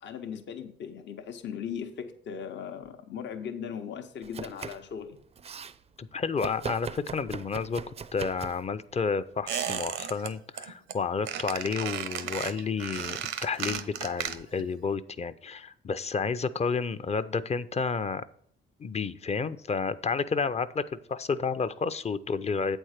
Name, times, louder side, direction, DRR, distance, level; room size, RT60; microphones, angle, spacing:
voice 1, 0.0-5.2, left 7 dB, 65° left, 6 dB, 0.9 m, -38 dB
Domestic sounds home sounds, 4.2-4.9 5.2-5.8 6.4-8.7 9.6-9.8, right 6 dB, 30° right, 0.4 m, -40 dB
voice 2, 6.0-7.8 8.1-18.2 18.8-20.8 21.1-22.8, left 5 dB, 35° left, 13 dB, 0.6 m, -30 dB
Squeak, 9.5-10.3 10.6-10.9 11.3-14.7 14.9-15.0, right 9 dB, 80° right, 0.8 m, -34 dB
8.1 x 4.5 x 6.5 m, 0.65 s
cardioid pair, 90°, 20 cm